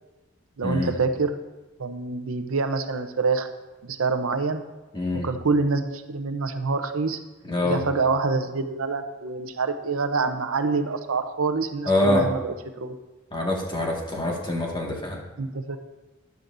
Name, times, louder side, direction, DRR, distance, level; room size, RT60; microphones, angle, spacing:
voice 1, 0.6-1.4 1.8-3.5 3.8-4.6 5.2-7.2 7.6-13.0 15.4-15.8, right 4 dB, 70° right, 8 dB, 0.7 m, -26 dB
voice 2, 4.9-5.3 7.5-7.8 11.8-12.3 13.3-15.2, left 1 dB, 25° left, -2 dB, 1.8 m, -25 dB
12.5 x 10.5 x 2.6 m, 1.2 s
head